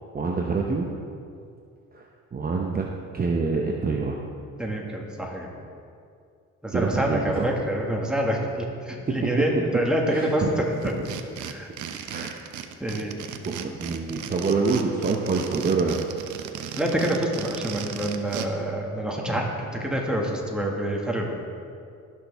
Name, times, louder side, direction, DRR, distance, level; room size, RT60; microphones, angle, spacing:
voice 1, 0.1-0.9 1.9-2.0 2.3-2.9 3.1-4.2 6.7-7.5 9.1-10.5 12.1-12.3 13.4-16.0, right 4 dB, 30° right, 0 dB, 0.8 m, -26 dB
voice 2, 4.6-5.5 6.6-10.9 11.4-11.7 12.8-13.1 16.7-21.3, right 1 dB, 5° right, -1 dB, 1.8 m, -26 dB
sound 1, 10.8-18.5, right 9 dB, 75° right, 0.7 m, -36 dB
16.5 x 6.2 x 3.5 m, 2.4 s
cardioid pair, 90°, 30 cm